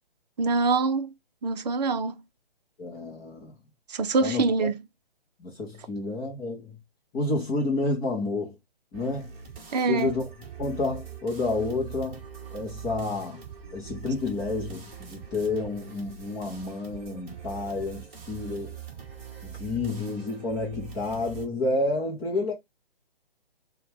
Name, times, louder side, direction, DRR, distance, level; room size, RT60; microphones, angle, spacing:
voice 1, 0.4-1.1 1.4-2.2 3.9-4.8 9.7-10.1, right 4 dB, 45° right, 0.6 m, -24 dB
voice 2, 2.8-3.5 4.2-4.7 5.4-6.8 7.1-8.6 8.9-9.3 9.9-10.2 10.6-12.2 12.5-13.4 13.7-18.8 19.4-22.5, left 3 dB, 10° left, 0.6 m, -30 dB
sound 1, 8.9-21.5, right 9 dB, 15° right, 1.4 m, -43 dB
6.7 x 2.3 x 3.5 m
figure-of-eight pair, 145°, 30 cm